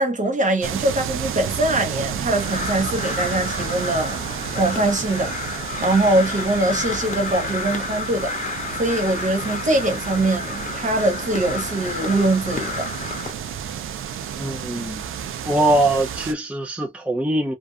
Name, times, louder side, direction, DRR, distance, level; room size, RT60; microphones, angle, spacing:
voice 1, 0.0-4.2 4.5-5.3 5.8-8.3 8.7-12.9, right 2 dB, 35° right, 0.9 m, -22 dB
sound 1, 0.6-16.3, right 8 dB, 80° right, 0.4 m, -31 dB
Crow, 2.3-13.3, left 4 dB, 35° left, 0.9 m, -31 dB
voice 2, 14.4-15.0 15.4-17.5, right 1 dB, 5° right, 0.4 m, -22 dB
2.5 x 2.4 x 2.3 m
cardioid pair, 85°, 21 cm